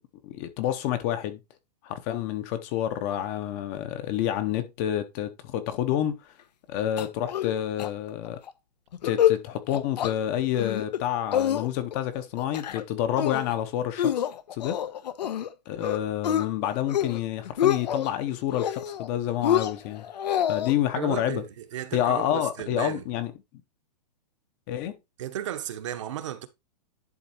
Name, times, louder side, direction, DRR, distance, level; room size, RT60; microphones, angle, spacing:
voice 1, 0.2-1.4 1.8-6.2 6.7-8.4 9.0-14.3 14.5-14.8 15.7-20.1 20.5-21.4 21.9-23.3 24.7-25.0, left 11 dB, 20° left, 0.8 m, -28 dB
sound 1, 7.0-7.5 7.8-7.9 8.2-8.5 8.9-9.4 9.7-10.1 10.5-11.0 11.3-12.0 12.4-12.8 13.2-13.6 14.0-15.5 15.8-16.4 16.8-17.2 17.4-18.1 18.5-19.1 19.4-20.7, left 10 dB, 80° left, 1.1 m, -26 dB
voice 2, 20.9-23.0 25.2-26.5, right 11 dB, 45° right, 1.1 m, -34 dB
11.0 x 4.1 x 4.3 m
supercardioid pair, 180°, 21 cm